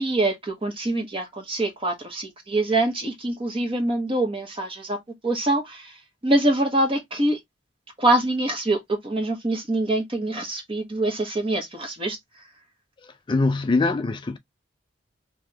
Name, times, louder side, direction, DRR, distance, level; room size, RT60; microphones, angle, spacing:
voice 1, 0.0-5.9 6.2-7.4 8.0-12.2, right 2 dB, 30° right, 1.3 m, -24 dB
voice 2, 13.0-14.4, left 3 dB, 25° left, 0.4 m, -23 dB
3.5 x 2.9 x 3.3 m
head